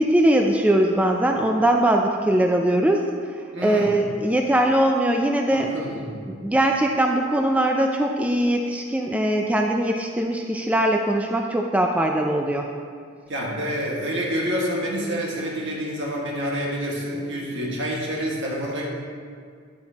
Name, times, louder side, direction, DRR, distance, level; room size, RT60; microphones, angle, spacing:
voice 1, 0.0-3.1 3.6-6.0 6.4-12.6, right 1 dB, 5° right, 2 dB, 0.4 m, -21 dB
voice 2, 3.5-3.9 5.5-6.2 13.3-18.9, equal, 65° right, -3 dB, 1.8 m, -28 dB
9.7 x 8.3 x 2.9 m, 2.1 s
head